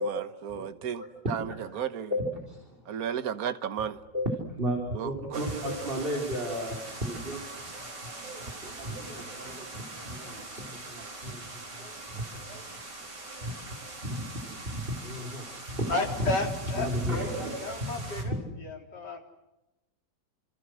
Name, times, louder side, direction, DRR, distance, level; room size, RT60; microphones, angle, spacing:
voice 1, 0.0-2.1 2.9-4.0 4.9-5.4 8.4-8.6, right 8 dB, 60° right, 1.6 m, -34 dB
voice 2, 2.1-2.8 4.1-7.7 8.6-12.2 13.4-13.5 14.0-15.5 15.7-15.9 16.8-17.9 18.2-18.4, equal, 30° right, 4.4 m, -34 dB
sound 1, 5.3-18.2, right 2 dB, 75° right, 5.0 m, -42 dB
voice 3, 15.9-16.9 17.4-19.2, left 3 dB, 75° left, 4.5 m, -33 dB
29.5 x 27.0 x 6.3 m
omnidirectional pair, 1.9 m